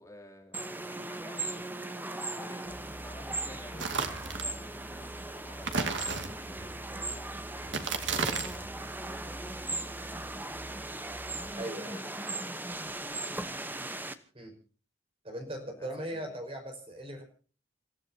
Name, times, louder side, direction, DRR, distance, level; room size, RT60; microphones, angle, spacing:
voice 1, 0.0-1.6 2.3-11.0 11.8-12.5 12.8-13.5 15.7-16.4, left 1 dB, 15° left, 1 dB, 3.3 m, -53 dB
sound 1, 0.5-14.2, right 2 dB, 10° right, 1.0 m, -38 dB
sound 2, 2.6-11.6, right 1 dB, 45° left, 6.4 m, -48 dB
sound 3, 3.8-4.5 5.6-6.7 7.6-8.7, right 4 dB, 75° right, 2.3 m, -33 dB
voice 2, 11.5-12.0 14.3-14.6 15.2-17.2, right 1 dB, 30° right, 5 dB, 5.1 m, -39 dB
29.5 x 15.0 x 2.8 m, 0.39 s
head